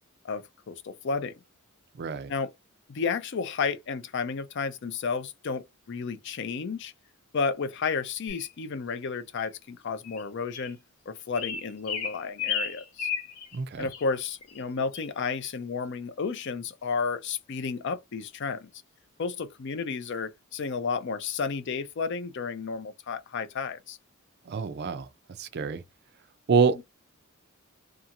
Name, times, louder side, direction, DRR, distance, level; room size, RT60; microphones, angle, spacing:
voice 1, 0.2-1.3 2.3-2.5 2.9-6.9 7.3-10.8 11.1-13.1 13.8-18.7 19.2-24.0 26.7-26.8, left 5 dB, 50° left, 0.4 m, -32 dB
voice 2, 2.0-2.3 13.5-13.9 24.5-25.1 25.4-25.8 26.5-26.8, right 5 dB, 45° right, 0.4 m, -26 dB
sound 1, 8.3-8.5 9.4-9.5 10.0-10.2 10.5-10.7 11.3-13.6 13.9-14.0 14.4-14.6 14.9-15.1, left 7 dB, 85° left, 0.9 m, -33 dB
2.8 x 2.4 x 2.4 m
head